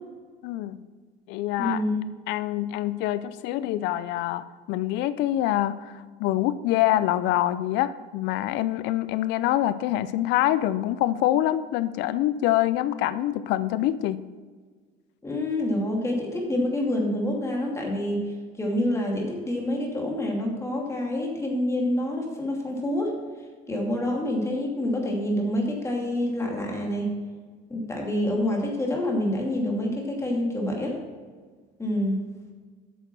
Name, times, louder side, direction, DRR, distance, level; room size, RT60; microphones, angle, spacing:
voice 1, 0.4-0.8 1.3-1.8 2.3-14.2, left 13 dB, 70° left, 14 dB, 0.5 m, -25 dB
voice 2, 1.6-2.0 15.2-23.2 23.7-27.1 27.7-31.0 31.8-32.3, left 1 dB, 15° left, -1 dB, 2.6 m, -27 dB
9.1 x 6.7 x 6.1 m, 1.5 s
cardioid pair, 120°, 19 cm